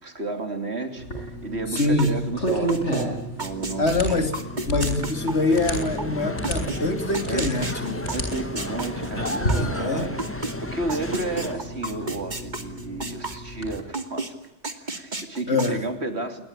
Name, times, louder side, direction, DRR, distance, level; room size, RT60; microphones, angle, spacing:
voice 1, 0.0-4.3 7.3-7.5 8.1-14.4 14.8-16.4, right 2 dB, 65° right, 3.3 m, -32 dB
sound 1, 1.0-13.7, right 1 dB, 90° left, 8.2 m, -32 dB
voice 2, 1.7-2.2 3.8-4.3 4.7-8.1 9.5-10.1 15.5-15.8, left 2 dB, 70° left, 3.6 m, -24 dB
sound 2, 1.8-3.0 3.4-6.8 7.1-10.5 10.9-13.4 13.7-14.3 14.6-15.7, right 3 dB, 40° right, 2.6 m, -32 dB
sound 3, 3.4-11.5, left 1 dB, 10° left, 1.4 m, -34 dB
28.5 x 21.5 x 8.9 m
omnidirectional pair, 1.2 m